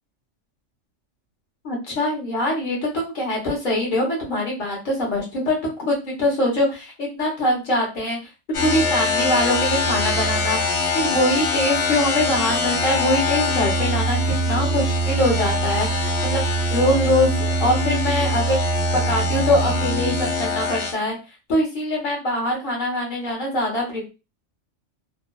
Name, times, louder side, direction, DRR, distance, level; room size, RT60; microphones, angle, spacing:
voice 1, 1.6-8.2 8.6-18.6 18.9-21.2 21.5-24.1, left 1 dB, 40° left, -2 dB, 1.1 m, -23 dB
sound 1, 8.5-20.9, left 1 dB, 65° left, 0.9 m, -23 dB
2.8 x 2.3 x 2.2 m, 0.29 s
omnidirectional pair, 1.3 m